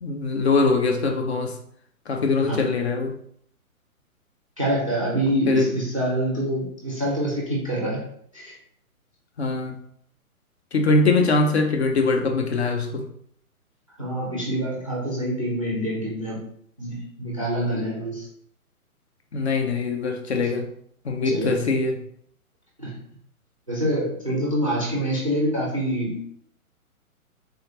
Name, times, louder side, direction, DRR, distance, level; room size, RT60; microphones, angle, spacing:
voice 1, 0.0-1.5 2.1-3.1 5.5-5.7 9.4-9.8 10.7-13.1 19.3-20.7 21.1-22.0, left 3 dB, 50° left, 4 dB, 0.5 m, -22 dB
voice 2, 2.4-2.7 4.6-8.0 8.3-8.5 14.0-16.4 16.8-18.3 20.4-20.5 21.2-21.7 22.8-23.0 23.7-26.2, right 1 dB, 25° right, -4 dB, 0.3 m, -26 dB
3.4 x 2.1 x 2.9 m, 0.65 s
figure-of-eight pair, 130°, 44 cm